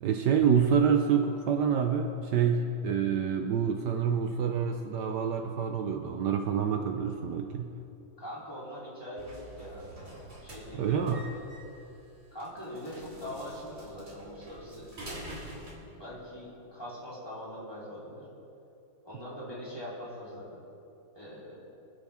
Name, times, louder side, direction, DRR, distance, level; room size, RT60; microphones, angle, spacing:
voice 1, 0.0-7.7 10.7-11.3, right 7 dB, 70° right, 5 dB, 1.3 m, -27 dB
voice 2, 8.2-9.3 9.6-9.9 10.4-11.4 12.3-14.9 15.3-15.4 15.7-18.3 19.0-20.6 21.1-21.6, equal, 10° left, -8 dB, 4.0 m, -42 dB
sound 1, 9.2-15.7, right 1 dB, 35° right, 2.9 m, -46 dB
25.5 x 10.5 x 3.6 m, 2.9 s
omnidirectional pair, 2.0 m